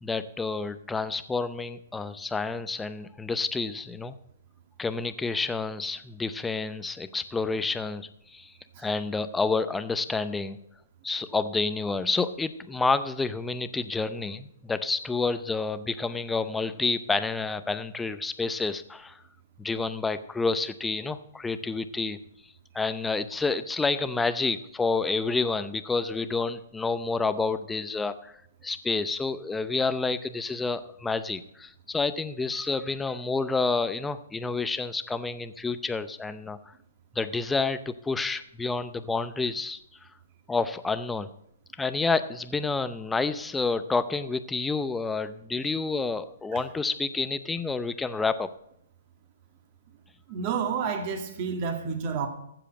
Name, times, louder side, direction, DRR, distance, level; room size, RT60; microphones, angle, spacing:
voice 1, 0.0-4.2 4.8-8.5 8.8-10.6 11.0-19.2 19.6-22.2 22.7-28.3 28.6-36.7 37.1-39.8 40.5-41.3 41.8-48.5, left 4 dB, 10° left, 12 dB, 0.6 m, -29 dB
voice 2, 50.3-52.3, right 6 dB, 40° right, 6 dB, 1.9 m, -30 dB
15.0 x 5.0 x 7.7 m, 0.74 s
hypercardioid pair, 140°, 0 cm